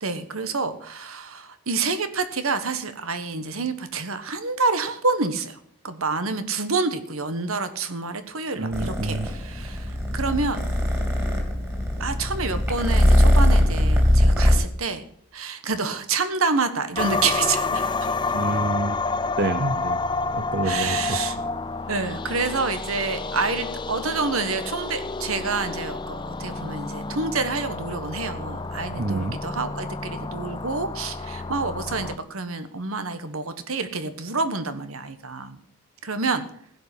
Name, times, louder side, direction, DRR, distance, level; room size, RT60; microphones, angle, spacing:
voice 1, 0.0-5.6 5.8-10.7 12.0-15.0 15.3-18.1 20.6-21.4 21.9-35.6 36.0-36.4, right 4 dB, 75° right, 10 dB, 1.4 m, -28 dB
voice 2, 8.5-9.3 18.3-19.1 19.4-20.0 20.3-21.2 28.9-29.4, right 2 dB, 50° right, 10 dB, 0.6 m, -28 dB
Purr, 8.7-14.5, left 1 dB, 10° right, 3.0 m, -20 dB
sound 1, 17.0-32.2, left 3 dB, 20° left, 0.5 m, -29 dB
16.0 x 5.4 x 9.8 m, 0.64 s
head